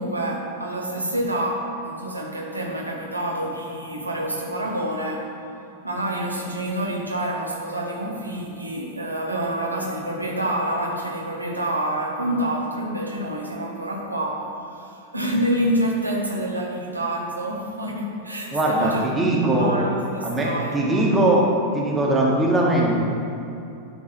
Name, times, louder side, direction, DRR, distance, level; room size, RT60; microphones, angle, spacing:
voice 1, 0.0-5.3 5.8-20.8, right 1 dB, 85° right, -1 dB, 1.0 m, -27 dB
voice 2, 18.5-19.7 20.2-21.4 21.7-22.9, right 1 dB, 15° right, -4 dB, 1.6 m, -20 dB
11.0 x 3.9 x 5.6 m, 2.7 s
figure-of-eight pair, 90°, 0 cm